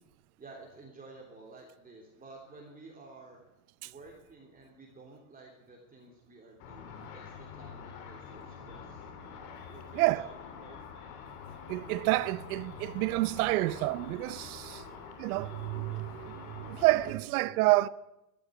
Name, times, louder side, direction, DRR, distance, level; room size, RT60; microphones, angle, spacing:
voice 1, 0.4-3.4 3.8-9.1 9.7-10.8, right 3 dB, 20° right, 3.3 m, -52 dB
Car / Traffic noise roadway noise / Engine, 6.6-17.1, left 6 dB, 70° left, 3.2 m, -46 dB
voice 2, 9.9-10.3 11.7-14.8 15.2-17.9, right 19 dB, 65° right, 0.8 m, -29 dB
13.0 x 12.0 x 9.3 m
supercardioid pair, 110°, 46 cm